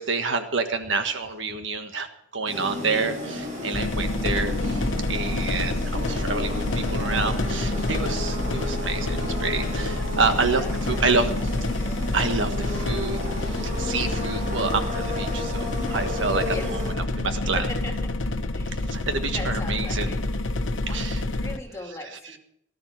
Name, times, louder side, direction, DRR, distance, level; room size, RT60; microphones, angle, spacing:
voice 1, 0.0-2.1 2.3-11.3 12.1-16.8 17.2-17.6 18.9-20.2 20.9-21.2, right 4 dB, 70° right, 7 dB, 1.5 m, -28 dB
sound 1, 2.5-16.9, left 1 dB, 40° right, 8.0 m, -33 dB
sound 2, 3.7-21.6, left 2 dB, 70° left, 1.1 m, -28 dB
voice 2, 10.1-11.5 16.5-16.7 17.4-17.9 18.5-18.8 19.3-20.2 20.9-22.4, left 2 dB, 15° left, 1 dB, 3.1 m, -39 dB
18.5 x 12.5 x 4.6 m, 0.75 s
head